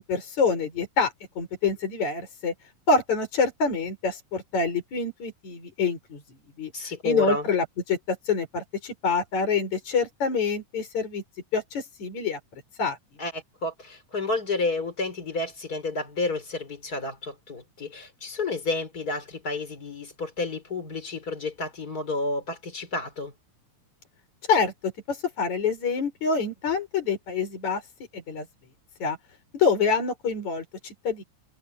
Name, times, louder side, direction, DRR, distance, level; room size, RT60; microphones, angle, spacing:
voice 1, 0.0-2.5 2.9-6.2 6.6-11.2 11.5-12.4 12.8-13.0 24.5-27.8 28.1-28.5 29.0-29.2 29.5-31.2, left 5 dB, 65° left, 7.1 m, -26 dB
voice 2, 6.7-7.5 13.2-23.3, left 3 dB, 30° left, 4.6 m, -30 dB
omnidirectional pair, 3.5 m